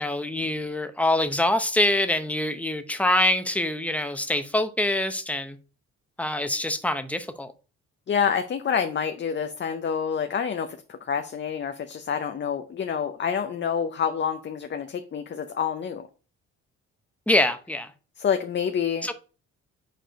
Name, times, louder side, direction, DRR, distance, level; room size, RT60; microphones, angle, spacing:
voice 1, 0.0-5.6 6.2-7.5 17.3-17.9 19.0-19.1, left 1 dB, 5° left, 0.8 m, -25 dB
voice 2, 8.1-16.1 18.2-19.1, left 7 dB, 40° left, 0.6 m, -27 dB
5.2 x 4.3 x 5.0 m
cardioid pair, 90°, 30 cm